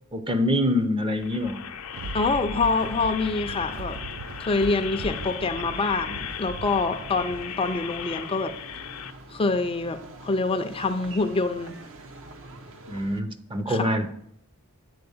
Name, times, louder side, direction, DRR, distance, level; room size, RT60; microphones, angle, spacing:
voice 1, 0.1-1.6 12.9-14.1, left 1 dB, 25° right, 9 dB, 0.6 m, -25 dB
sound 1, 1.1-9.1, left 9 dB, 70° left, 0.6 m, -37 dB
Thunder, 1.5-9.1 9.6-9.7, right 3 dB, 80° right, 0.4 m, -40 dB
voice 2, 2.1-4.0 4.4-8.5 9.3-11.8 13.7-14.0, left 3 dB, 25° left, 8 dB, 0.4 m, -26 dB
sound 2, 2.5-13.2, right 2 dB, 60° right, 0.9 m, -46 dB
9.5 x 4.2 x 7.0 m, 0.73 s
head